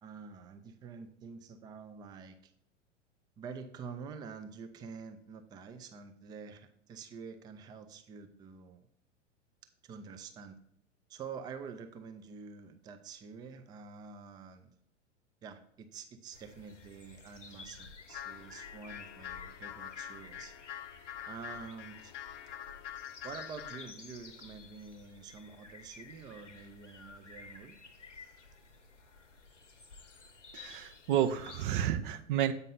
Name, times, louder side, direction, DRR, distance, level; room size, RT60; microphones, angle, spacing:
voice 1, 0.0-2.5 3.4-8.8 9.8-10.6 11.1-14.7 15.4-20.5 21.3-22.1 23.2-27.8, right 5 dB, 10° right, 8 dB, 0.4 m, -47 dB
sound 1, 16.3-31.7, left 4 dB, 75° left, 0.9 m, -53 dB
sound 2, 18.1-23.9, left 11 dB, 45° left, 0.7 m, -45 dB
voice 2, 30.5-32.5, right 10 dB, 45° right, 9 dB, 0.7 m, -31 dB
8.2 x 5.2 x 3.9 m, 0.71 s
figure-of-eight pair, 95°, 37 cm